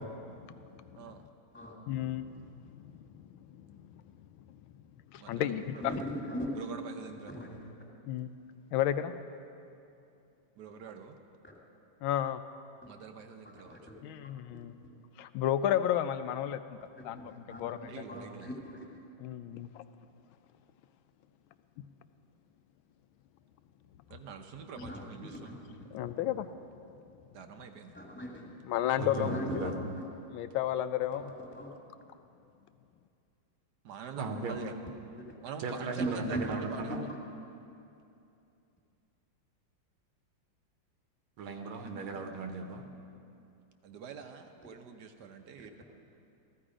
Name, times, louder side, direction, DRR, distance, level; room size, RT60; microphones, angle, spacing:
voice 1, 0.7-1.1 1.9-2.5 2.8-4.0 4.5-4.6 5.1-5.9 8.0-8.3 8.7-9.1 12.0-12.4 14.0-14.7 15.2-17.9 19.2-19.8 25.9-26.5 28.7-29.3 29.6-29.7 30.3-31.3, left 11 dB, 80° left, 11 dB, 1.4 m, -33 dB
voice 2, 5.2-6.0 6.5-7.4 10.6-11.2 12.9-13.8 17.7-18.5 24.1-25.6 27.3-27.9 33.8-34.7 35.4-37.1 43.8-45.8, right 6 dB, 65° right, 6 dB, 1.2 m, -45 dB
voice 3, 5.8-6.6 7.3-7.7 12.8-12.9 13.4-14.3 14.8-14.9 17.1-19.0 24.7-25.8 27.9-28.5 29.1-30.0 31.3-31.7 34.5-34.6 35.2-35.3 36.0-37.0 45.6-45.8, equal, 5° left, -3 dB, 1.9 m, -39 dB
voice 4, 29.0-29.8 34.2-34.5 35.6-37.1 41.4-42.8, right 3 dB, 85° right, 4 dB, 1.9 m, -37 dB
15.0 x 14.0 x 5.0 m, 2.6 s
omnidirectional pair, 2.2 m